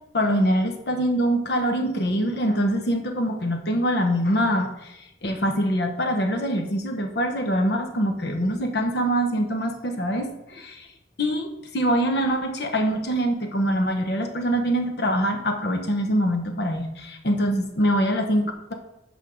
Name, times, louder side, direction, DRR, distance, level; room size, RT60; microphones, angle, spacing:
voice 1, 0.1-10.9 11.2-18.7, equal, 60° left, 5 dB, 1.0 m, -24 dB
8.2 x 3.5 x 6.3 m, 0.86 s
head